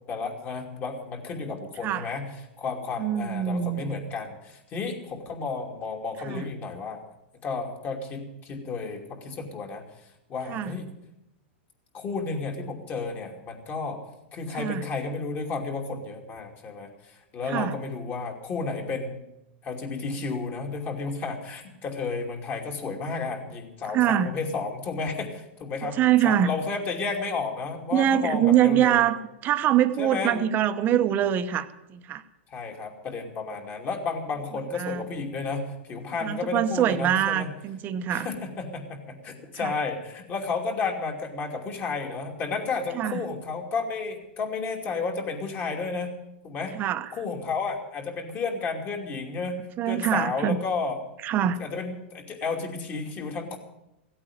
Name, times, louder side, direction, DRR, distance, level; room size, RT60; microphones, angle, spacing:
voice 1, 0.1-7.0 7.4-9.8 10.3-10.9 11.9-14.0 14.3-19.2 19.6-29.0 30.0-30.5 32.5-37.5 38.1-46.1 46.4-46.7 47.1-49.6 49.9-51.0 51.6-53.6, left 4 dB, 30° left, 2 dB, 2.7 m, -32 dB
voice 2, 3.0-4.0 6.2-6.4 10.5-10.8 14.5-14.9 17.5-17.7 23.9-24.3 25.8-26.5 27.9-32.2 34.7-35.1 36.2-38.3 39.6-39.7 42.9-43.2 46.8-47.1 49.8-50.6 51.2-51.6, right 10 dB, 30° right, 11 dB, 0.9 m, -24 dB
16.5 x 8.6 x 9.3 m, 0.91 s
hypercardioid pair, 140°, 6 cm